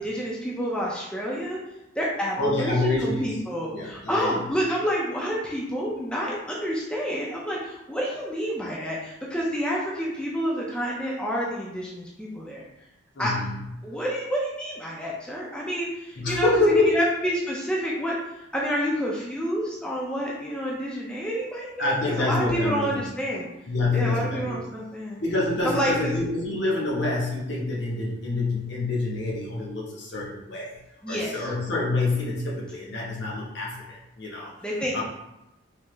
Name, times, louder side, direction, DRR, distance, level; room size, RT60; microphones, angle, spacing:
voice 1, 0.0-1.6 2.0-12.6 13.2-13.3 13.8-16.5 16.8-18.2 18.5-23.5 23.9-25.2 25.6-26.2 31.0-31.3 34.6-35.0, equal, 5° left, -4 dB, 0.4 m, -28 dB
voice 2, 2.4-3.3 3.7-4.4 13.2-13.6 16.2-16.9 21.8-22.9 23.7-24.7 25.2-30.8 31.1-34.6 34.9-35.0, left 2 dB, 60° left, -4 dB, 1.0 m, -26 dB
3.3 x 2.8 x 3.1 m, 0.90 s
head